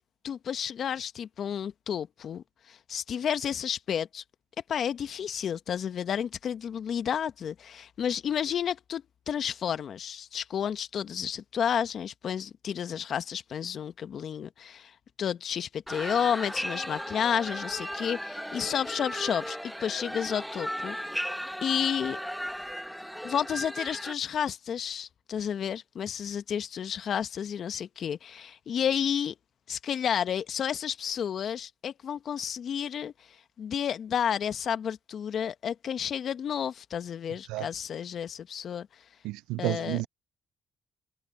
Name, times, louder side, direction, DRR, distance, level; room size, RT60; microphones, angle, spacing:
voice 1, 0.2-4.2 4.7-14.9 15.2-21.0 21.6-22.2 23.2-29.3 29.7-33.1 33.6-38.9 39.6-40.0, left 8 dB, 65° left, 1.2 m, -31 dB
sound 1, 15.9-24.1, equal, ahead, 1.2 m, -36 dB
voice 2, 39.2-40.1, right 20 dB, 90° right, 0.4 m, -31 dB
supercardioid pair, 50°, 0 cm